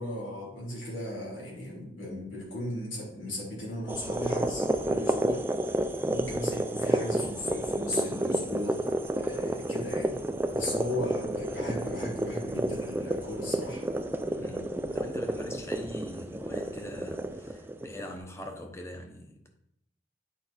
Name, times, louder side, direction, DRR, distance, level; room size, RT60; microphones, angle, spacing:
voice 1, 0.0-5.4 6.0-8.8 9.1-10.2 10.5-13.8, left 1 dB, 90° left, 3.4 m, -36 dB
sound 1, 3.9-18.1, right 1 dB, 10° right, 0.3 m, -31 dB
voice 2, 14.2-19.5, left 1 dB, 15° left, 0.9 m, -42 dB
8.4 x 4.9 x 4.3 m
head